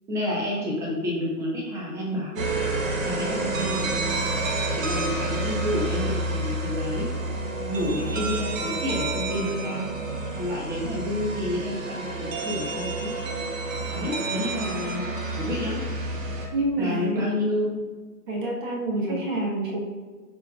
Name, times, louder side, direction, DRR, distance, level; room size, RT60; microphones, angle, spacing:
voice 1, 0.1-2.4 3.0-3.9 4.7-7.1 7.6-9.9 10.4-13.1 13.9-15.0 15.4-15.8 16.8-17.8 19.0-19.3, left 1 dB, 5° right, -4 dB, 0.9 m, -29 dB
sound 1, 2.4-16.5, right 2 dB, 50° right, 1.4 m, -29 dB
voice 2, 16.5-17.3 18.3-19.8, right 1 dB, 30° right, -2 dB, 1.4 m, -27 dB
12.5 x 4.6 x 2.4 m, 1.4 s
hypercardioid pair, 140°, 49 cm